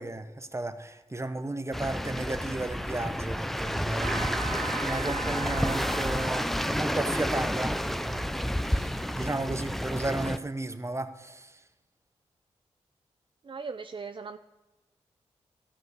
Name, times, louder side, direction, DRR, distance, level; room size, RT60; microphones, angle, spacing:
voice 1, 0.0-11.6, right 2 dB, 25° right, 1.1 m, -34 dB
sound 1, 1.7-10.4, equal, ahead, 0.6 m, -30 dB
Trumpet, 4.0-9.5, right 5 dB, 75° right, 2.4 m, -40 dB
voice 2, 13.4-14.4, right 5 dB, 45° right, 0.5 m, -39 dB
13.0 x 6.0 x 8.1 m
supercardioid pair, 40°, 12 cm